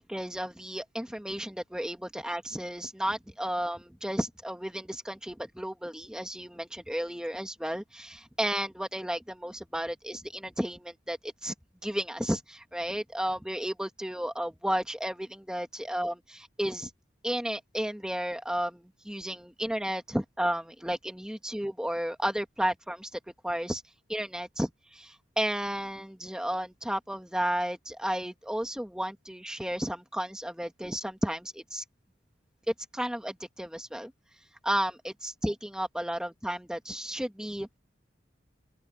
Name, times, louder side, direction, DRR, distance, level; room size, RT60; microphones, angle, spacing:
voice 1, 0.0-11.5 11.8-16.9 17.2-23.1 23.4-23.8 24.1-31.8 32.9-34.1 34.6-37.8, equal, 5° right, 1.5 m, -33 dB
open air
head